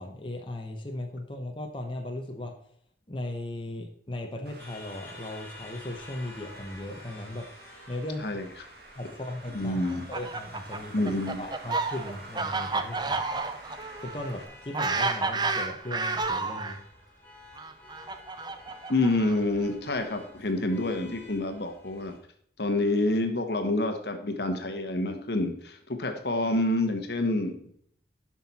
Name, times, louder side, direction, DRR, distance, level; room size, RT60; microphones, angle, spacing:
voice 1, 0.0-2.5 3.1-7.5 7.9-8.4 9.0-11.0 11.4-13.2 14.0-16.8, left 1 dB, 30° left, 2 dB, 1.0 m, -37 dB
Traffic noise roadway noise, 4.5-14.5, right 2 dB, 55° right, 1.7 m, -49 dB
sound 1, 4.6-22.2, left 2 dB, 10° left, 2.0 m, -51 dB
voice 2, 9.5-10.1 10.9-11.4 18.9-22.1 22.6-27.7, left 2 dB, 65° left, 5 dB, 1.3 m, -28 dB
Fowl, 9.8-16.8 17.6-19.6, right 3 dB, 25° right, 0.6 m, -31 dB
11.5 x 6.1 x 4.2 m, 0.65 s
head